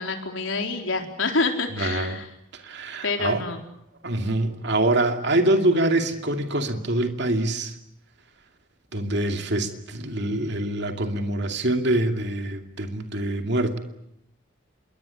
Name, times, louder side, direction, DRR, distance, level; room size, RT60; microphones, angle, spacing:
voice 1, 0.0-2.3 3.0-3.6, left 3 dB, 75° left, 3 dB, 4.3 m, -27 dB
voice 2, 1.8-2.2 2.5-3.4 4.0-7.7 8.9-13.8, right 1 dB, 55° right, 5 dB, 2.5 m, -25 dB
27.0 x 22.5 x 8.4 m, 0.79 s
head